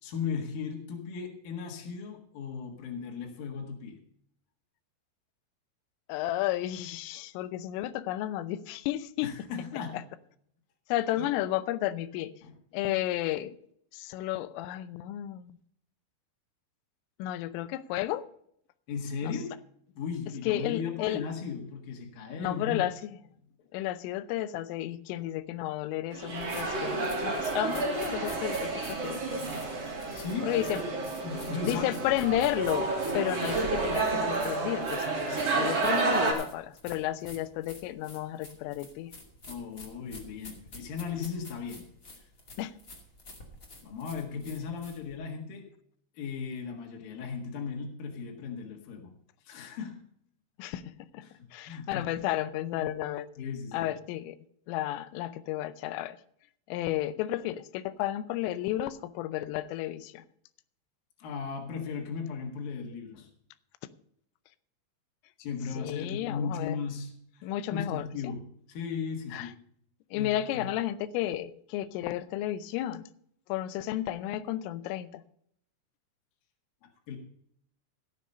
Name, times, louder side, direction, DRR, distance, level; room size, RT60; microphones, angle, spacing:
voice 1, 0.0-4.0 9.2-10.1 11.2-11.3 12.4-12.5 18.9-19.6 19.9-22.8 30.1-30.9 31.2-32.0 39.5-41.9 42.2-42.3 43.8-45.7 46.1-49.1 49.4-50.0 51.2-52.2 52.8-52.9 53.4-53.9 61.2-63.3 65.4-69.6 70.2-70.3 70.5-70.7 76.8-77.2, left 5 dB, 60° left, 1 dB, 2.8 m, -37 dB
voice 2, 6.1-9.3 9.9-10.0 10.9-12.3 12.7-13.6 13.9-15.6 17.2-18.2 19.2-19.4 20.5-21.2 22.4-22.9 23.7-29.4 30.4-30.8 31.6-39.1 42.6-42.7 50.6-50.8 51.1-51.2 51.5-53.3 53.7-54.4 54.7-56.2 56.7-60.2 65.7-66.8 67.4-68.3 69.3-69.5 70.1-73.1 73.5-75.2, left 14 dB, 85° left, 14 dB, 3.3 m, -32 dB
sound 1, 26.1-36.3, right 3 dB, 35° right, 3.6 m, -30 dB
sound 2, 26.3-45.2, left 2 dB, 45° left, 1.0 m, -49 dB
16.5 x 7.0 x 5.4 m, 0.68 s
omnidirectional pair, 5.7 m